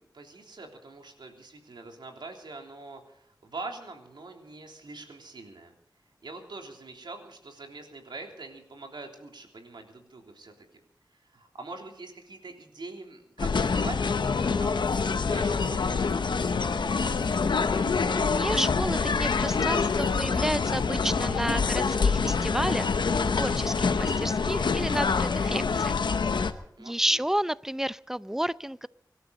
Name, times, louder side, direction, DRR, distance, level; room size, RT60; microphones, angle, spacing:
voice 1, 0.0-5.7 6.2-10.5 11.1-17.2 26.8-27.2, right 3 dB, 85° right, 3 dB, 3.4 m, -44 dB
sound 1, 13.4-26.5, left 5 dB, 90° left, 1.0 m, -26 dB
voice 2, 18.0-22.9 23.3-25.9 26.8-28.9, right 1 dB, 5° right, 17 dB, 0.6 m, -31 dB
25.0 x 12.5 x 4.1 m, 0.74 s
cardioid pair, 50°, 8 cm